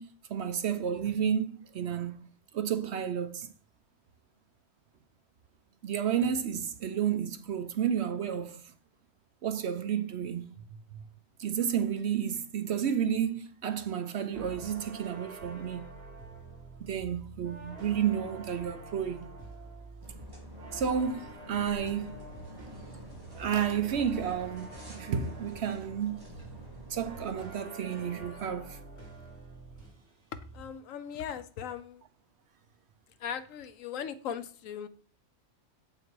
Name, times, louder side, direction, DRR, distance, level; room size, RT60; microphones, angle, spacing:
voice 1, 0.0-2.3 2.5-3.5 5.8-8.7 9.4-10.4 10.9-11.0 11.4-15.9 16.8-19.3 20.7-22.2 23.4-26.2 26.9-28.8, right 8 dB, 60° right, 0.8 m, -31 dB
sound 1, 14.3-30.1 30.3-30.8, right 3 dB, 45° right, 2.4 m, -47 dB
sound 2, 20.0-27.5, equal, 15° right, 1.5 m, -50 dB
voice 2, 30.5-32.0 33.2-34.9, left 8 dB, 75° left, 1.0 m, -38 dB
7.9 x 5.8 x 4.6 m
omnidirectional pair, 1.4 m